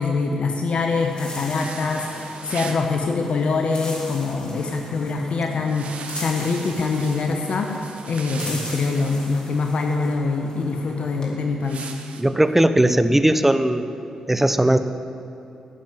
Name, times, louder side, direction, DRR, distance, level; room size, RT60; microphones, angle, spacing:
voice 1, 0.0-7.7 8.1-11.8, left 4 dB, 60° left, 3 dB, 1.1 m, -24 dB
sound 1, 0.9-11.3, left 1 dB, 40° left, 3.4 m, -39 dB
sound 2, 1.6-2.9 5.6-9.7 11.6-12.2, right 5 dB, 65° right, 1.1 m, -39 dB
voice 2, 12.2-13.9 14.3-14.8, right 1 dB, 10° right, 11 dB, 0.9 m, -18 dB
11.5 x 7.5 x 9.3 m, 2.8 s
hypercardioid pair, 45°, 2 cm